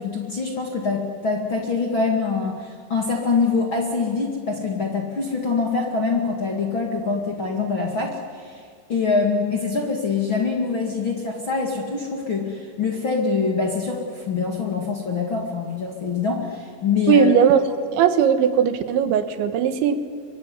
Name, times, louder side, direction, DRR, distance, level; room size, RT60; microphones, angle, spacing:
voice 1, 0.0-8.6 8.9-17.3, left 4 dB, 40° left, 1 dB, 2.0 m, -24 dB
voice 2, 17.1-17.6 17.9-20.0, right 8 dB, 80° right, 10 dB, 3.6 m, -18 dB
24.5 x 23.0 x 9.7 m, 2.1 s
omnidirectional pair, 5.3 m